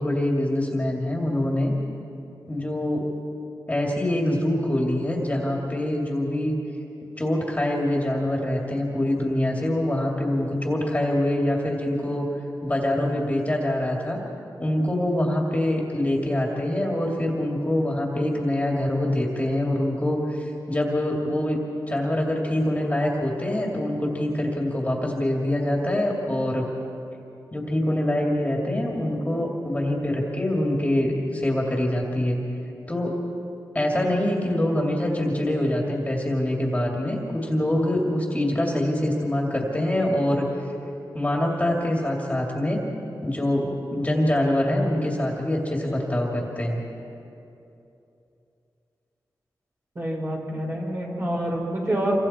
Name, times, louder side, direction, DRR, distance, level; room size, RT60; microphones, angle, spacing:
voice 1, 0.0-1.7 2.5-3.1 3.7-6.5 7.2-12.3 12.6-14.2 14.6-21.6 21.9-26.7 27.5-32.4 32.9-33.1 33.7-40.5 41.1-42.8 43.2-46.8, left 1 dB, 20° left, -1 dB, 2.5 m, -24 dB
voice 2, 50.0-52.2, right 1 dB, 35° right, -3 dB, 5.6 m, -27 dB
27.5 x 24.5 x 4.4 m, 2.8 s
wide cardioid pair, 110°, 8 cm